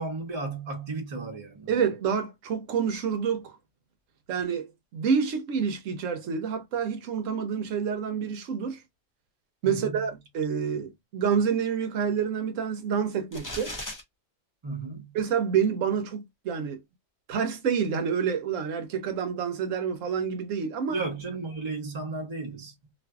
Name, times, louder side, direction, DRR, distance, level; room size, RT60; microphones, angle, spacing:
voice 1, 0.0-1.7 9.6-10.1 14.6-15.2 20.9-22.7, right 3 dB, 25° right, 0.9 m, -34 dB
voice 2, 1.7-3.5 4.3-8.8 9.6-13.7 15.1-16.8 17.3-21.0, right 7 dB, 85° right, 1.1 m, -28 dB
sound 1, 13.3-14.0, left 1 dB, 25° left, 0.5 m, -36 dB
2.5 x 2.5 x 2.3 m
omnidirectional pair, 1.3 m